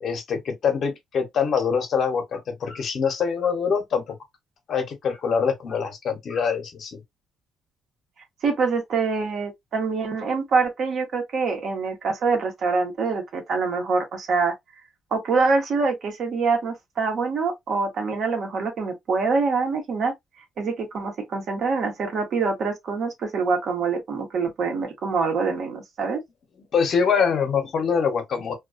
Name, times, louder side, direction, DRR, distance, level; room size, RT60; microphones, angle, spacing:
voice 1, 0.0-4.1 4.7-7.0 26.7-28.6, left 6 dB, 60° left, 0.8 m, -24 dB
voice 2, 8.4-14.5 15.1-20.1 20.6-26.2, right 4 dB, 65° right, 0.9 m, -25 dB
2.3 x 2.3 x 2.3 m
cardioid pair, 90°, 0 cm